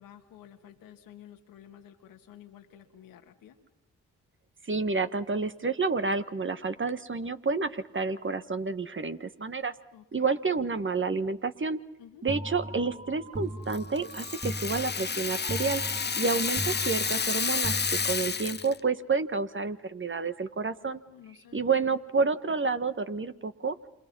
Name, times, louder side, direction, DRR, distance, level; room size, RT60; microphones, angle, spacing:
voice 1, 0.0-3.6 7.2-7.3 9.9-10.3 12.0-12.3 16.0-16.7 20.9-21.9, left 10 dB, 80° left, 5 dB, 2.1 m, -52 dB
voice 2, 4.7-9.7 10.1-11.8 12.2-15.8 16.2-21.0 21.5-23.7, right 4 dB, 35° right, 10 dB, 1.6 m, -29 dB
sound 1, 12.3-18.6, right 1 dB, 20° right, 2.4 m, -39 dB
Rattle (instrument), 13.7-18.8, left 5 dB, 30° left, 0.9 m, -30 dB
28.5 x 27.5 x 5.6 m, 0.87 s
supercardioid pair, 40°, 33 cm